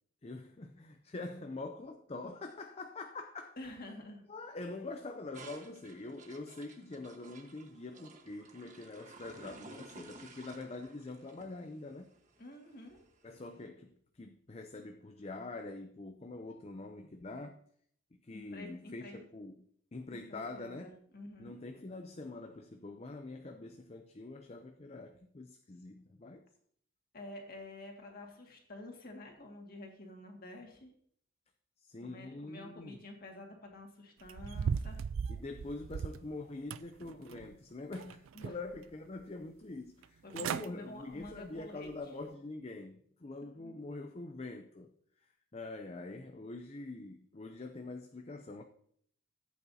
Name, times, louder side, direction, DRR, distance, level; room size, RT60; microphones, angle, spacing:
voice 1, 0.2-3.6 4.3-12.1 13.2-17.6 18.2-19.7 19.9-20.9 21.4-26.4 31.8-33.0 35.3-44.9 45.5-48.6, left 2 dB, 30° left, 0.5 m, -45 dB
voice 2, 3.6-4.2 12.4-13.0 18.3-19.2 20.3-21.6 27.1-30.9 32.0-35.0 38.3-38.6 40.2-42.0 43.6-43.7, left 1 dB, 45° left, 2.0 m, -49 dB
sound 1, 5.3-13.6, right 3 dB, 35° right, 1.3 m, -54 dB
sound 2, 34.2-36.3 36.7-37.5 37.9-38.8 39.2-39.3 40.0-40.1 40.3-40.7 41.1-41.4 41.9-42.0, right 6 dB, 70° right, 0.4 m, -37 dB
14.5 x 8.5 x 2.8 m
head